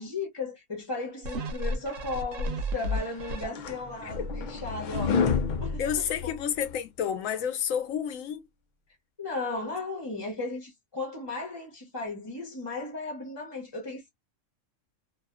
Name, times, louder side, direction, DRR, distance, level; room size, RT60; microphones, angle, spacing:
voice 1, 0.0-5.2 5.6-5.9 6.2-6.4 9.2-14.1, left 3 dB, 25° left, 0.6 m, -35 dB
sound 1, 1.2-3.9 4.4-4.5, equal, 75° right, 1.1 m, -33 dB
sound 2, 3.1-6.7, left 5 dB, 70° left, 0.4 m, -30 dB
voice 2, 5.8-8.4, left 8 dB, 85° left, 1.0 m, -30 dB
2.6 x 2.3 x 2.2 m
omnidirectional pair, 1.3 m